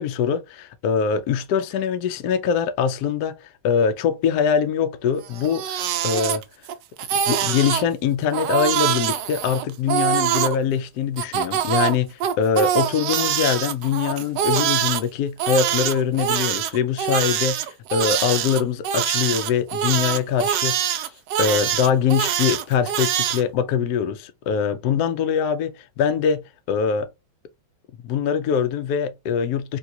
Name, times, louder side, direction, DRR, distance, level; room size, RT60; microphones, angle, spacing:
voice 1, 0.0-6.4 7.3-17.6 17.9-21.1 21.4-27.1 28.0-29.8, left 7 dB, 90° left, 0.8 m, -23 dB
Crying sobbing, 5.3-6.7 7.0-7.8 8.3-10.6 11.2-15.0 15.4-23.4, right 10 dB, 75° right, 1.0 m, -24 dB
3.7 x 2.3 x 2.7 m
omnidirectional pair, 2.3 m